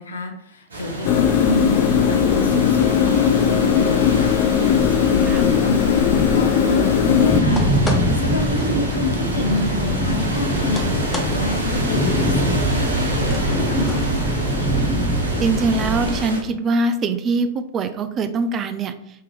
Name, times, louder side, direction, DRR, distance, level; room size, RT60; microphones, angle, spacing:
voice 1, 0.0-14.5, left 2 dB, 80° left, 5 dB, 0.7 m, -28 dB
sound 1, 0.7-16.4, right 1 dB, 85° right, 1.1 m, -29 dB
sound 2, 1.0-7.4, left 8 dB, 45° left, 0.3 m, -18 dB
sound 3, 7.3-16.2, equal, 15° left, 0.6 m, -22 dB
voice 2, 15.4-18.9, right 3 dB, 30° right, 10 dB, 0.4 m, -22 dB
3.7 x 2.9 x 3.1 m, 0.75 s
hypercardioid pair, 105°, 0 cm